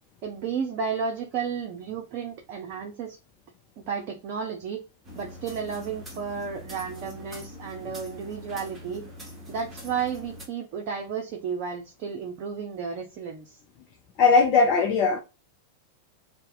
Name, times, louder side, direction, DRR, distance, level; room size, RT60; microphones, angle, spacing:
voice 1, 0.2-3.2 3.8-4.8 5.2-9.0 9.5-13.6, right 6 dB, 40° right, 0.6 m, -32 dB
sound 1, 5.0-10.5, left 1 dB, 15° right, 1.2 m, -43 dB
voice 2, 14.2-15.2, left 4 dB, 40° left, 0.5 m, -19 dB
2.8 x 2.2 x 3.7 m
figure-of-eight pair, 90°, 0 cm